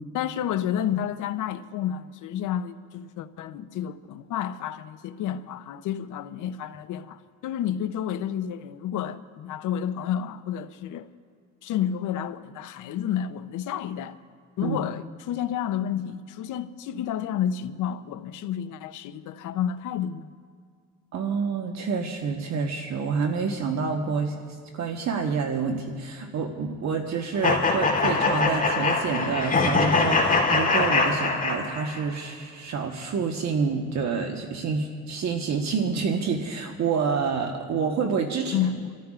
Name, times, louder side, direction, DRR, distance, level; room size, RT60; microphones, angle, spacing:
voice 1, 0.1-11.1 11.6-14.2 14.6-20.3 38.5-38.9, left 9 dB, 85° left, 0.7 m, -30 dB
voice 2, 21.1-24.3 24.7-38.6, right 5 dB, 65° right, 1.3 m, -28 dB
sound 1, 27.4-32.0, left 3 dB, 30° left, 3.2 m, -23 dB
30.0 x 14.0 x 2.5 m
cardioid pair, 90°, 30 cm